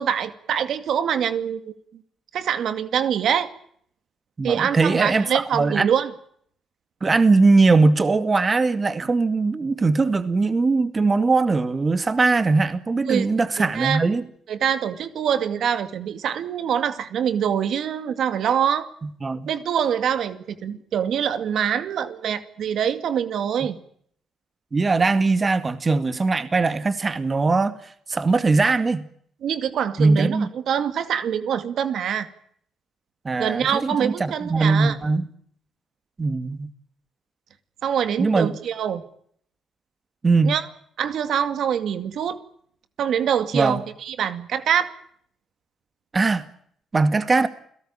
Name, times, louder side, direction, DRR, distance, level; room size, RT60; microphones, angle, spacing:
voice 1, 0.0-1.7 2.3-3.5 4.4-6.1 13.1-13.3 13.6-14.0 14.5-18.9 19.5-23.8 29.4-32.3 33.4-35.0 37.8-39.0 40.4-40.7 41.0-42.4 43.0-44.9, right 8 dB, 70° right, 11 dB, 2.3 m, -24 dB
voice 2, 4.4-5.9 7.0-14.2 19.2-19.5 24.7-27.7 28.1-29.1 30.0-30.5 33.2-35.3 36.2-36.7 38.2-38.6 40.2-40.6 43.5-43.8 46.1-46.4 46.9-47.5, right 3 dB, 30° right, 11 dB, 2.1 m, -20 dB
29.0 x 17.5 x 8.8 m, 0.66 s
cardioid pair, 90°, 0 cm